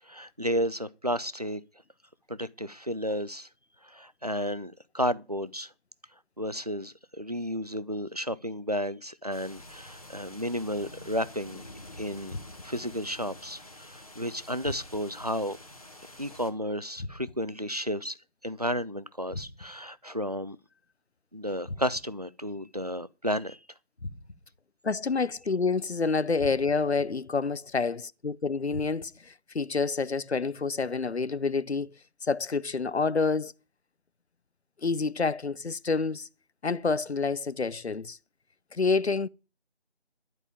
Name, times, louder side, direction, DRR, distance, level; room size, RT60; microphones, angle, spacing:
voice 1, 0.1-1.6 2.3-3.5 3.8-5.7 6.4-11.6 12.0-12.4 12.6-15.6 16.2-18.2 18.4-20.6 21.3-23.6, equal, 40° right, 0.5 m, -32 dB
sound 1, 9.3-16.5, left 1 dB, 35° left, 1.4 m, -48 dB
sound 2, 12.3-12.9 14.6-15.3 17.0-17.6 19.3-19.9 21.6-22.3 24.0-24.6 26.4-27.0 28.7-29.3, left 2 dB, 55° left, 1.2 m, -42 dB
voice 2, 24.8-31.9 32.2-33.5 34.8-36.3 36.6-38.2 38.7-39.3, left 4 dB, 80° left, 0.7 m, -28 dB
11.0 x 5.4 x 8.6 m
figure-of-eight pair, 170°, 33 cm